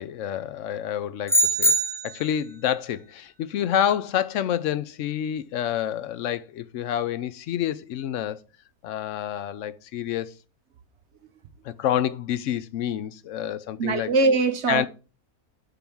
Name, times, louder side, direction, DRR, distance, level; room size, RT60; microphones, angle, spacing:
voice 1, 0.0-1.8 2.0-8.4 8.8-10.4 11.6-14.1 14.7-14.9, left 10 dB, 65° left, 0.8 m, -28 dB
sound 1, 1.3-2.4, right 1 dB, ahead, 0.9 m, -22 dB
voice 2, 13.8-14.9, right 3 dB, 60° right, 0.8 m, -22 dB
6.9 x 3.8 x 6.0 m
omnidirectional pair, 1.6 m